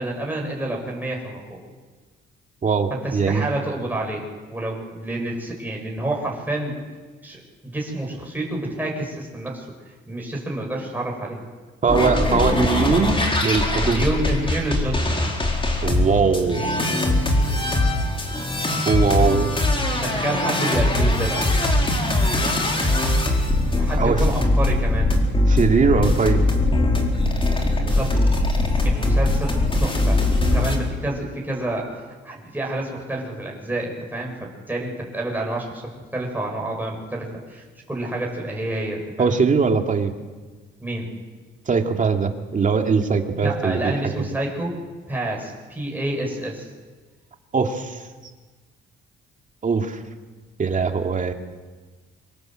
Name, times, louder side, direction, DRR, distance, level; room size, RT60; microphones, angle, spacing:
voice 1, 0.0-1.6 2.9-6.7 7.2-9.6 10.1-11.4 13.8-15.2 20.0-21.4 23.7-25.1 27.6-28.2 28.8-31.9 32.2-35.8 36.1-39.3 40.8-41.1 43.4-44.8 45.1-46.7, right 1 dB, 10° right, -1 dB, 6.8 m, -28 dB
voice 2, 2.6-3.5 11.8-14.1 15.8-16.7 18.8-19.5 24.0-24.2 25.5-26.4 39.2-40.1 41.7-43.9 47.5-48.0 49.6-50.0 50.6-51.3, right 5 dB, 40° right, 4 dB, 2.4 m, -21 dB
sound 1, 11.9-30.8, left 1 dB, 25° left, 4.6 m, -21 dB
25.5 x 17.0 x 7.7 m, 1.4 s
cardioid pair, 90°, 20 cm